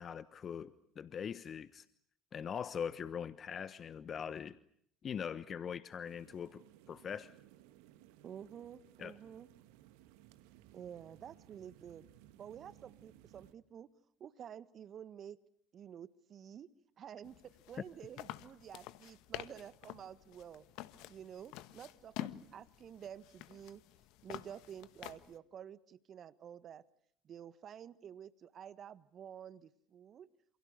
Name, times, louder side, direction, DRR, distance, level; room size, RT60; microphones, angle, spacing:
voice 1, 0.0-1.8 2.3-4.6 5.0-6.6 6.9-7.3 9.0-9.2, left 7 dB, 40° left, 15 dB, 1.2 m, -42 dB
sound 1, 6.0-13.5, right 13 dB, 75° right, 1.9 m, -61 dB
voice 2, 8.2-9.5 10.7-12.1 12.3-13.9 14.2-15.4 15.7-16.7 17.0-20.7 21.1-23.8 24.2-26.8 27.2-30.3, right 9 dB, 50° right, 16 dB, 1.4 m, -50 dB
sound 2, 17.2-25.4, left 15 dB, 65° left, 1.5 m, -49 dB
28.5 x 28.0 x 6.7 m, 0.67 s
hypercardioid pair, 65°, 0 cm